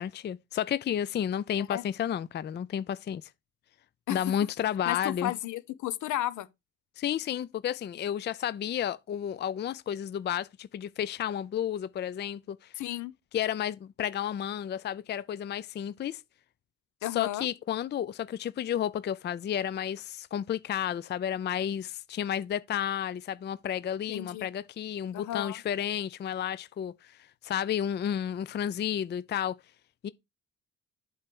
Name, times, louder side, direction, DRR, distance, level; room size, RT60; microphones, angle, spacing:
voice 1, 0.0-3.3 4.1-5.3 7.0-12.7 13.3-16.2 17.1-27.2 27.4-29.6 30.0-30.1, left 10 dB, 35° left, 0.4 m, -32 dB
voice 2, 4.8-6.5 12.8-13.1 17.0-17.5 24.1-24.5 25.1-25.6, left 14 dB, 75° left, 0.8 m, -33 dB
8.0 x 3.3 x 5.9 m
cardioid pair, 90°, 30 cm